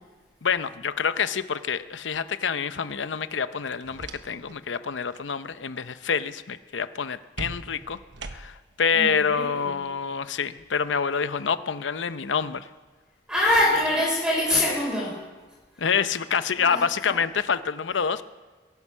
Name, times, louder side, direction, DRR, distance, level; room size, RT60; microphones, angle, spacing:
voice 1, 0.4-8.0 8.3-12.7 15.8-18.2, left 6 dB, 85° left, 13 dB, 0.7 m, -27 dB
sound 1, 3.6-4.6 4.9-5.3 7.4-8.8, right 3 dB, 80° right, 1.0 m, -40 dB
voice 2, 8.9-9.7 13.3-15.1 16.6-16.8, left 1 dB, 5° right, -5 dB, 3.8 m, -24 dB
22.0 x 11.0 x 5.6 m, 1.4 s
head